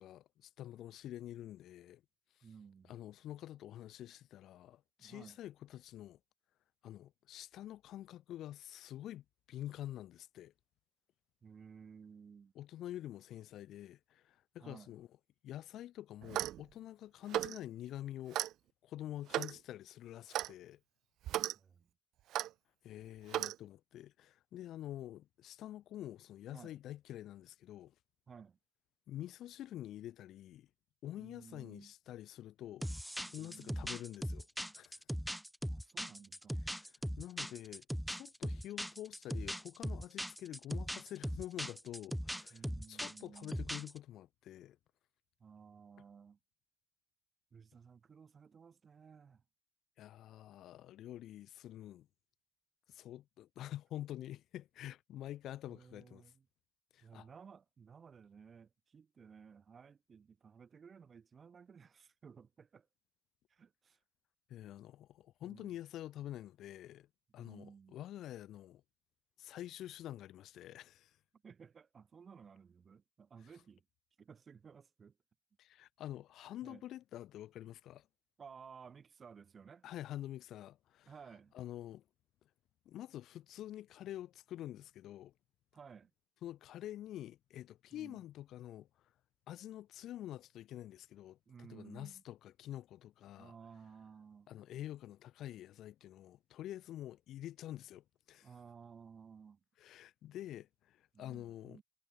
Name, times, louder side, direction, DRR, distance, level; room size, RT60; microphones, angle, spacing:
voice 1, 0.0-2.0 2.9-6.2 6.8-10.5 12.6-15.1 15.4-18.4 18.8-20.8 22.8-27.9 29.1-30.7 31.0-32.9 33.3-34.5 34.7-34.9 37.2-42.6 42.9-44.8 50.0-52.1 52.9-56.3 56.9-57.3 64.5-67.1 67.3-68.8 69.4-71.1 75.6-78.1 79.8-81.1 81.5-82.0 82.9-85.3 86.4-88.9 89.5-93.5 94.5-98.5 99.8-101.8, left 13 dB, 80° left, 4.1 m, -47 dB
voice 2, 2.4-3.0 5.0-5.4 11.4-12.5 14.6-14.9 21.5-21.9 26.5-26.8 28.3-28.6 31.2-31.9 33.4-34.0 35.7-36.7 42.5-43.6 45.4-46.4 47.5-49.4 55.7-56.5 57.0-62.9 63.5-64.0 65.4-65.8 67.4-68.0 71.3-73.8 74.2-75.2 76.6-76.8 78.4-79.9 81.1-81.6 85.7-86.1 87.9-88.2 91.5-92.2 93.4-94.5 98.4-99.6 101.1-101.8, right 6 dB, 45° right, 7.9 m, -56 dB
Clock, 16.2-16.6 17.3-17.6 18.3-18.5 19.3-19.6 20.3-20.5 21.3-21.5 22.3-22.5 23.3-23.6, right 13 dB, 85° right, 0.9 m, -35 dB
sound 1, 32.8-44.0, equal, ahead, 1.4 m, -40 dB
cardioid pair, 90°, 0 cm